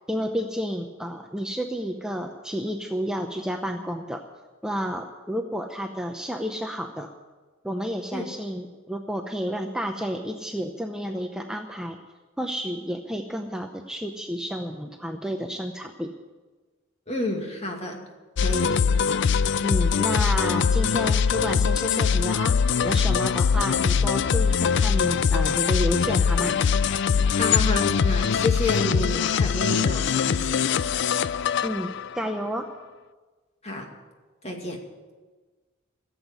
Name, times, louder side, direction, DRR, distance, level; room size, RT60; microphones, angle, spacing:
voice 1, 0.1-4.2 4.6-7.1 7.6-12.0 12.4-16.1 19.6-22.5 22.8-26.5 31.6-32.7, equal, 5° right, 4 dB, 0.7 m, -31 dB
voice 2, 17.1-18.0 18.4-18.7 27.4-30.7 33.6-33.9 34.4-34.8, left 1 dB, 35° left, 2 dB, 2.3 m, -29 dB
sound 1, 18.4-32.3, left 6 dB, 65° left, 0.4 m, -22 dB
15.5 x 8.1 x 9.6 m, 1.3 s
head